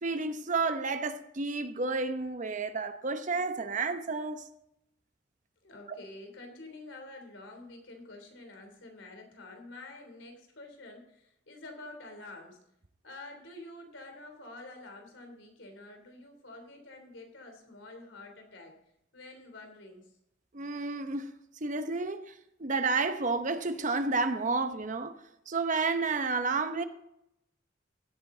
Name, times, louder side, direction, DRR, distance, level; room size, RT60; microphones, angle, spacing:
voice 1, 0.0-4.4 5.9-6.0 20.5-21.3 21.6-22.3 22.6-25.1 25.5-26.8, right 3 dB, 40° right, 0.8 m, -31 dB
voice 2, 5.6-12.6 13.0-18.7 19.1-20.1, left 2 dB, 80° left, 3.3 m, -48 dB
16.5 x 8.9 x 3.9 m
head